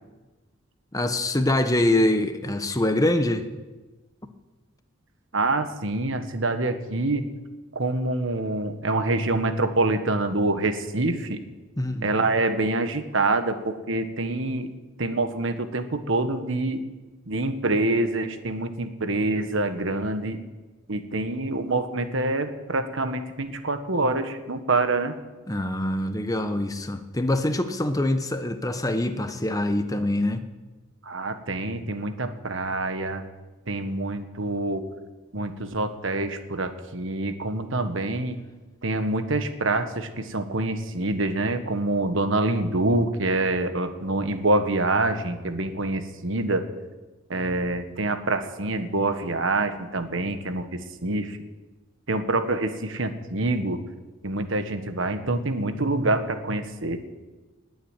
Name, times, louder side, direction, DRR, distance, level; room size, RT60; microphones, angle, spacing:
voice 1, 0.9-3.5 11.8-12.1 25.5-30.4, left 1 dB, 15° left, 8 dB, 1.0 m, -24 dB
voice 2, 5.3-7.3 7.7-11.4 12.0-14.7 15.0-16.8 17.3-20.4 20.9-25.1 31.0-33.2 33.7-34.9 35.3-38.4 38.8-46.6 47.3-50.7 51.0-51.4 52.1-53.8 54.2-57.0, right 2 dB, 65° right, 8 dB, 1.4 m, -26 dB
19.5 x 8.1 x 9.0 m, 1.2 s
head